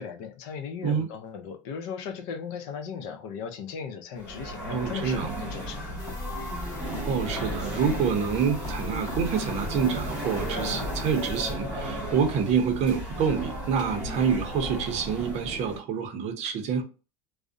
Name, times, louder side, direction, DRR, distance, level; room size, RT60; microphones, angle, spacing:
voice 1, 0.0-5.8, left 6 dB, 60° left, 0.6 m, -37 dB
sound 1, 4.2-15.8, right 1 dB, 5° right, 1.3 m, -35 dB
voice 2, 4.7-5.4 7.0-16.8, right 6 dB, 40° right, 0.6 m, -27 dB
sound 2, 6.0-11.5, left 2 dB, 20° left, 0.9 m, -37 dB
2.4 x 2.0 x 2.5 m
supercardioid pair, 145°, 18 cm